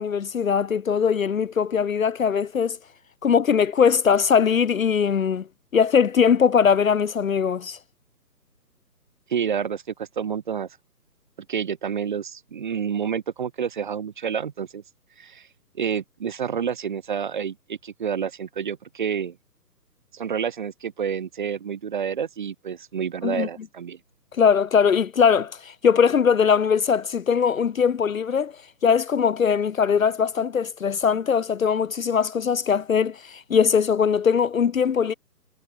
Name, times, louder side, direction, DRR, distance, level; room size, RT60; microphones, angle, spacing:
voice 1, 0.0-2.8 3.2-5.4 5.7-7.8 23.2-23.5 24.4-28.5 28.8-35.1, left 6 dB, 55° left, 0.7 m, -21 dB
voice 2, 9.3-10.7 11.5-14.8 15.2-15.5 15.7-19.4 20.1-24.0, right 7 dB, 30° right, 1.1 m, -29 dB
figure-of-eight pair, 145°, 49 cm